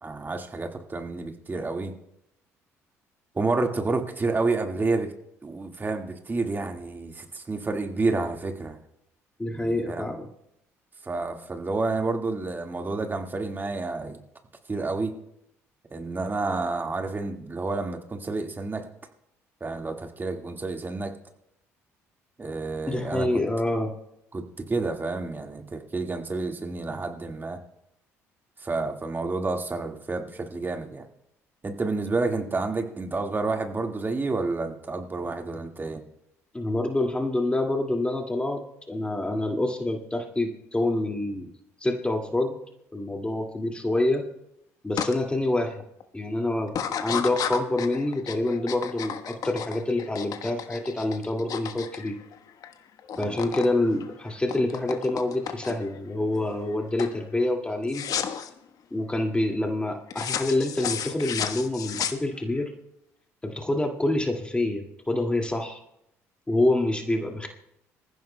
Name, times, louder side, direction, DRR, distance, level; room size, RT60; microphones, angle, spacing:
voice 1, 0.0-1.9 3.4-5.1 5.4-8.8 9.5-10.1 11.0-14.2 14.7-15.1 15.9-18.9 19.6-21.1 22.4-23.3 24.3-27.6 28.6-31.1 31.6-36.0 53.1-53.4, right 3 dB, 25° right, 4 dB, 1.8 m, -29 dB
voice 2, 9.4-10.3 22.9-23.9 36.5-41.5 41.8-42.6 42.9-44.3 44.8-45.8 46.1-46.7 47.0-52.2 53.2-58.1 58.9-62.7 63.4-65.8 66.5-67.5, left 2 dB, 15° left, 2 dB, 2.1 m, -27 dB
sound 1, 45.0-45.1 45.6-46.0 46.7-52.7 53.0-53.7 54.0-56.0 56.4-56.7 57.0-57.2 57.9-58.5 60.1-62.6, left 8 dB, 55° left, 1.2 m, -33 dB
26.5 x 15.0 x 2.2 m, 0.81 s
hypercardioid pair, 55°, 8 cm